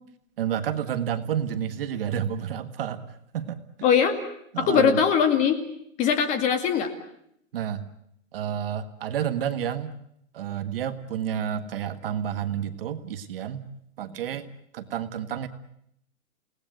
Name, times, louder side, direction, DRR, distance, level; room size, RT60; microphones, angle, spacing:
voice 1, 0.4-3.6 4.5-5.0 7.5-7.9 8.3-9.9 10.3-13.6 14.0-14.5 14.7-15.5, right 9 dB, 45° right, 9 dB, 1.6 m, -30 dB
voice 2, 3.8-4.1 4.6-5.6 6.0-6.9, left 7 dB, 20° left, 8 dB, 2.1 m, -21 dB
29.0 x 18.5 x 9.2 m, 0.75 s
hypercardioid pair, 165°, 40 cm